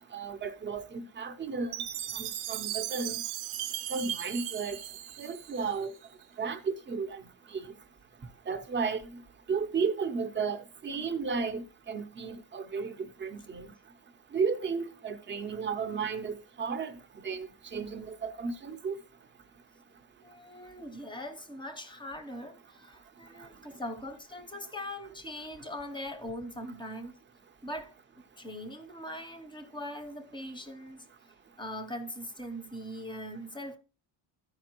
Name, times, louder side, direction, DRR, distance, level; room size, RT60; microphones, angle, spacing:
voice 1, 0.0-1.7 2.1-3.2 3.9-4.8 5.2-5.9 6.4-7.2 7.5-7.7 8.5-9.1 9.5-13.7 14.3-17.0 17.2-19.0 23.4-23.5, right 5 dB, 25° right, 0.7 m, -33 dB
Chime, 1.7-6.0, right 11 dB, 85° right, 0.8 m, -37 dB
voice 2, 20.2-27.2 27.6-27.9 28.4-31.1 31.6-33.8, left 1 dB, 10° left, 0.7 m, -41 dB
13.5 x 5.1 x 2.9 m
cardioid pair, 165°, 46 cm